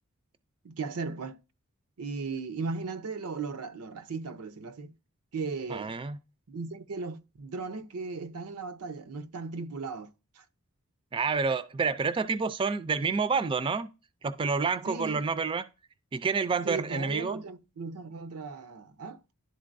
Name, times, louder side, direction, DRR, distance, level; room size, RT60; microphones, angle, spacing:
voice 1, 0.6-1.4 2.0-4.9 5.3-6.0 6.5-10.1 10.4-10.5 14.9-15.3 16.6-19.2, right 4 dB, 90° right, 0.6 m, -37 dB
voice 2, 5.7-6.2 11.1-13.9 14.2-15.6 16.1-17.4, right 4 dB, 25° right, 0.3 m, -28 dB
11.5 x 3.9 x 2.6 m
head